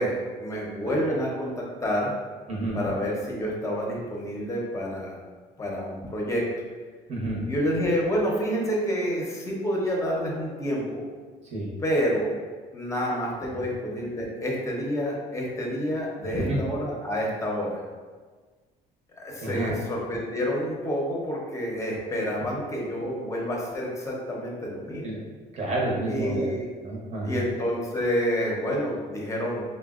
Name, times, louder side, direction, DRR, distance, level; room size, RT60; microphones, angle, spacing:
voice 1, 0.0-2.1 2.7-5.2 5.6-6.4 7.5-11.0 11.8-12.4 12.7-17.8 19.2-25.0 26.0-26.6 27.2-29.6, equal, 20° left, -2 dB, 0.7 m, -28 dB
voice 2, 7.1-7.4 11.5-11.7 16.3-16.6 19.4-19.8 25.0-25.2 25.5-26.5 26.8-27.4, right 1 dB, 40° right, -3 dB, 0.9 m, -29 dB
3.8 x 2.2 x 2.4 m, 1.4 s
cardioid pair, 110°, 17 cm